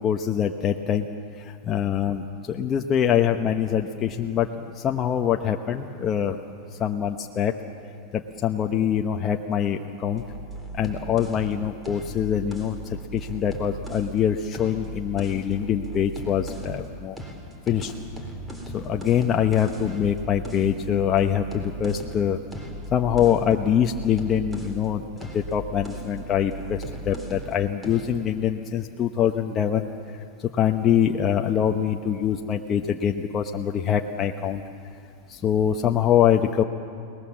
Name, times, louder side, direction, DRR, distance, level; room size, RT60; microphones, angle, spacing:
voice 1, 0.0-1.0 1.4-6.4 6.8-7.5 8.4-10.2 10.7-17.2 17.7-17.9 18.7-22.4 22.9-29.9 30.5-34.6 35.3-36.6, left 9 dB, 25° left, 3 dB, 0.9 m, -24 dB
sound 1, 10.2-14.1 14.5-16.9 17.2-24.8 25.2-27.5 27.8-28.1, right 1 dB, 10° right, 3.4 m, -37 dB
29.5 x 19.5 x 7.3 m, 2.4 s
supercardioid pair, 150°, 0 cm